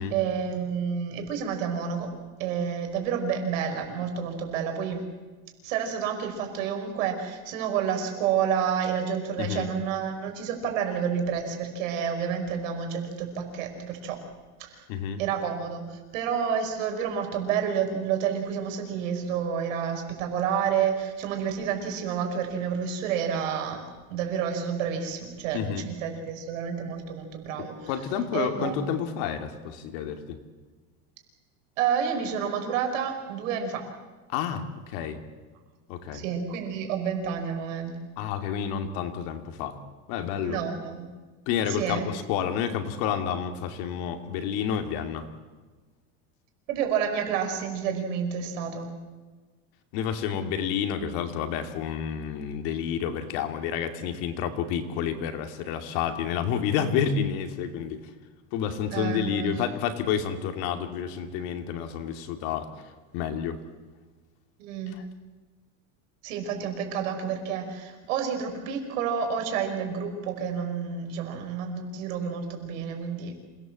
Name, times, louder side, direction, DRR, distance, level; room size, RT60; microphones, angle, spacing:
voice 1, 0.0-2.1 2.4-5.0 5.6-14.2 14.7-14.8 15.2-23.8 24.1-27.9 28.3-28.8 31.8-33.8 36.1-37.9 40.4-41.1 41.7-42.1 46.7-48.9 58.9-59.5 64.6-65.0 66.2-73.3, right 7 dB, 90° right, 4 dB, 5.7 m, -29 dB
voice 2, 14.9-15.2 25.5-25.9 27.9-30.4 34.3-35.2 35.9-36.2 38.2-39.8 40.1-40.6 41.5-45.3 49.9-58.0 58.5-62.7 63.1-63.6, left 8 dB, 55° left, 6 dB, 2.6 m, -29 dB
27.5 x 18.5 x 7.7 m, 1.3 s
cardioid pair, 170°, 38 cm